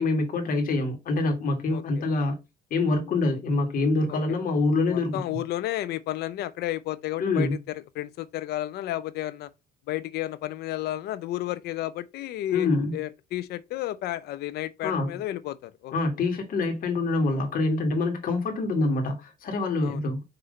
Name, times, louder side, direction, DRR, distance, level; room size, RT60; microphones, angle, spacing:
voice 1, 0.0-2.4 2.7-5.4 7.2-7.6 12.5-13.0 14.8-15.1 15.9-20.2, left 3 dB, 55° left, 2.1 m, -25 dB
voice 2, 1.7-2.0 4.1-4.4 4.9-9.5 9.9-15.9 19.8-20.0, left 14 dB, 75° left, 0.6 m, -32 dB
6.0 x 3.2 x 5.3 m
cardioid pair, 110°, 17 cm